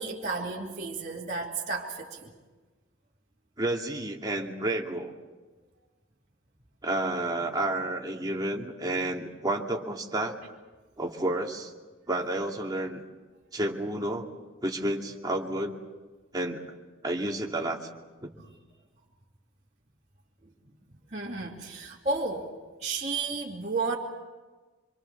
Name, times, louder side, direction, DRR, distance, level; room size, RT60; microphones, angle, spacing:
voice 1, 0.0-2.3 20.4-20.5 21.1-22.5 22.8-24.0, right 3 dB, 35° right, -6 dB, 2.7 m, -32 dB
voice 2, 3.6-5.1 6.8-10.5 11.0-11.7 12.1-13.0 13.5-14.3 14.6-15.7 16.3-16.8 17.0-17.8 18.2-18.3, right 1 dB, 20° right, 0 dB, 2.4 m, -30 dB
26.5 x 24.0 x 7.0 m, 1.3 s
head